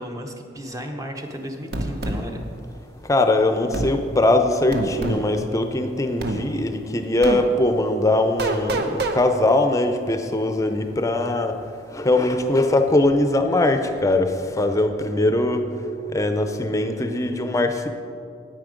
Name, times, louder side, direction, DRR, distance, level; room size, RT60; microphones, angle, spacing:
voice 1, 0.0-2.4, equal, 20° right, 3 dB, 0.8 m, -34 dB
sound 1, 1.7-2.2 3.7-3.9 4.7-5.2 6.2-6.4 7.2-7.4 8.4-9.2, right 2 dB, 60° right, 0.9 m, -25 dB
voice 2, 3.1-11.5 11.9-15.6 16.1-17.9, left 2 dB, 15° left, 7 dB, 0.6 m, -21 dB
9.7 x 8.9 x 5.1 m, 2.4 s
head